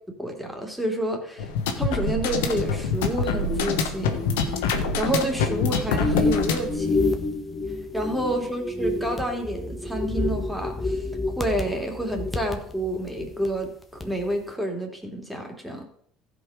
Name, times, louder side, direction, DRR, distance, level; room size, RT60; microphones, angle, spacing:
voice 1, 0.2-1.5 1.8-4.2 4.5-7.1 7.9-15.8, right 1 dB, ahead, 1 dB, 3.0 m, -29 dB
sound 1, 1.4-6.8, left 4 dB, 85° left, 1.3 m, -26 dB
sound 2, 2.3-13.7 14.0-14.3, left 3 dB, 20° left, 1.5 m, -30 dB
15.0 x 5.5 x 5.2 m, 0.64 s
supercardioid pair, 80°, 0 cm